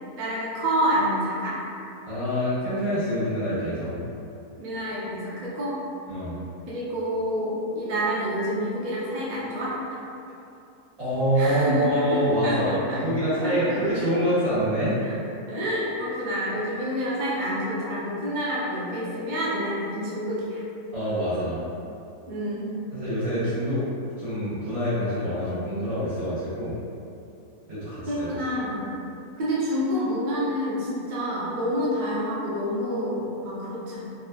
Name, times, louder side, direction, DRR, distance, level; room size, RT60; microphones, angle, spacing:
voice 1, 0.2-1.6 4.6-5.8 6.7-10.0 11.4-13.0 13.4-13.5 13.9-14.0 15.0-15.1 15.5-20.6 22.3-22.9 28.1-28.9 29.4-34.1, equal, 50° right, -8 dB, 0.5 m, -28 dB
voice 2, 2.1-3.9 6.1-6.4 11.0-15.0 20.9-21.6 22.9-23.9 24.2-26.8 27.7-28.3, equal, 70° right, -14 dB, 2.2 m, -26 dB
4.2 x 2.3 x 2.3 m, 2.7 s
omnidirectional pair, 1.6 m